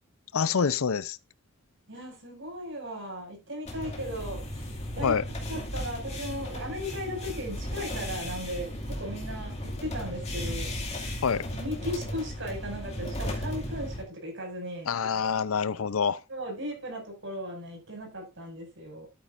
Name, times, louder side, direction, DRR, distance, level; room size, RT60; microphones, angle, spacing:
voice 1, 0.3-1.2 5.0-5.2 11.2-11.5 14.9-16.2, left 6 dB, 80° left, 0.6 m, -26 dB
voice 2, 1.9-5.2 5.5-10.7 11.6-14.9 16.3-19.1, equal, 60° right, 6.2 m, -37 dB
sound 1, 3.6-14.0, left 1 dB, 30° left, 2.4 m, -35 dB
12.0 x 9.2 x 2.6 m
head